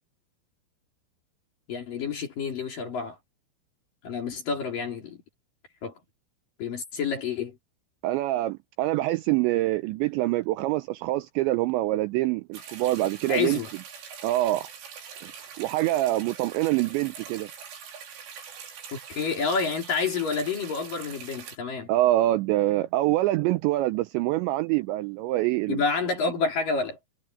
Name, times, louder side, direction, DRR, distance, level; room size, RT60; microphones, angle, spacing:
voice 1, 1.7-3.2 4.0-5.2 5.8-5.9 6.6-7.6 13.3-13.7 18.9-21.9 25.7-27.0, left 5 dB, 45° left, 4.9 m, -29 dB
voice 2, 8.0-13.6 14.2-14.7 15.6-17.5 21.9-25.8, right 16 dB, 90° right, 2.5 m, -25 dB
sound 1, 12.5-21.6, right 7 dB, 70° right, 6.2 m, -43 dB
omnidirectional pair, 6.0 m